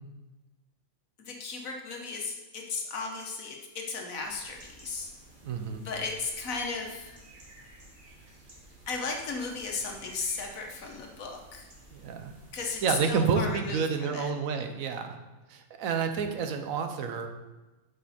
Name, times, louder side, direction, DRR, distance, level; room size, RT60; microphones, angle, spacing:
voice 1, 1.2-5.1 5.8-7.1 8.9-11.7 12.5-14.3, left 4 dB, 80° left, 2 dB, 1.6 m, -35 dB
sound 1, 4.2-13.6, right 1 dB, 40° right, 1.5 m, -53 dB
voice 2, 5.4-5.9 11.9-12.3 12.8-15.2 15.5-17.3, right 5 dB, 80° right, 7 dB, 1.2 m, -29 dB
7.9 x 5.4 x 4.2 m, 1.1 s
omnidirectional pair, 1.4 m